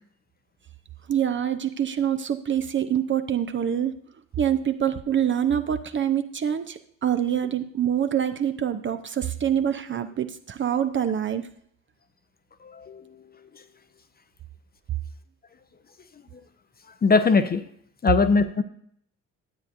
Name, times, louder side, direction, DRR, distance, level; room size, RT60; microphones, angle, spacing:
voice 1, 1.1-3.9 4.4-11.5, right 9 dB, 30° right, 9 dB, 0.6 m, -25 dB
voice 2, 12.7-13.2 17.0-17.6 18.0-18.6, left 4 dB, 25° left, 11 dB, 0.7 m, -20 dB
12.5 x 8.9 x 2.6 m, 0.68 s
figure-of-eight pair, 40°, 38 cm